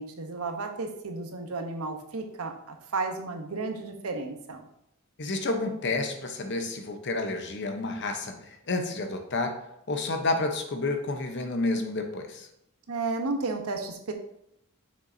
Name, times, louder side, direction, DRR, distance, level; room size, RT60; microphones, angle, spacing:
voice 1, 0.0-4.7 12.9-14.1, right 3 dB, 80° right, 5 dB, 0.9 m, -33 dB
voice 2, 5.2-9.6 9.9-12.5, left 2 dB, 55° left, 5 dB, 0.9 m, -30 dB
6.6 x 6.1 x 2.7 m, 0.76 s
head